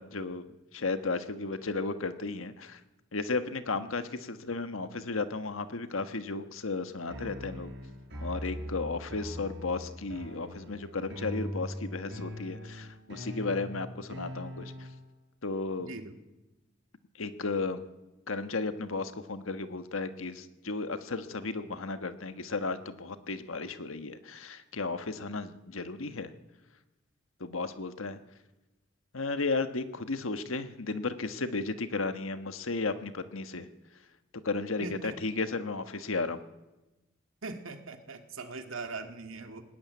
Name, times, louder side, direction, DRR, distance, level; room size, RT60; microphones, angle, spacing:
voice 1, 0.0-2.8 3.1-7.7 8.2-14.7 15.4-15.9 17.2-17.8 18.3-26.3 27.4-28.2 29.1-33.7 34.4-36.5, left 3 dB, 85° left, 10 dB, 1.3 m, -34 dB
sound 1, 7.1-15.1, equal, 60° right, 5.1 m, -41 dB
voice 2, 15.8-16.2 34.8-35.1 37.4-39.6, right 3 dB, 85° right, 6 dB, 1.9 m, -41 dB
19.0 x 14.0 x 9.5 m, 1.1 s
head